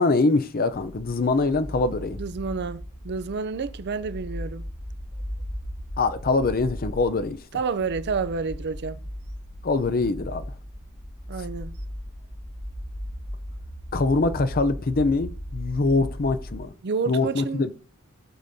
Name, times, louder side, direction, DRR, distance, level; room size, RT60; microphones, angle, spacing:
voice 1, 0.0-2.2 6.0-7.4 9.6-10.4 13.9-16.7 17.1-17.7, left 3 dB, 45° left, 0.6 m, -23 dB
sound 1, 0.7-16.6, equal, 25° left, 2.6 m, -37 dB
voice 2, 2.2-4.7 7.5-9.0 11.3-11.8 16.8-17.7, right 5 dB, 50° right, 0.5 m, -29 dB
15.0 x 6.8 x 2.7 m
head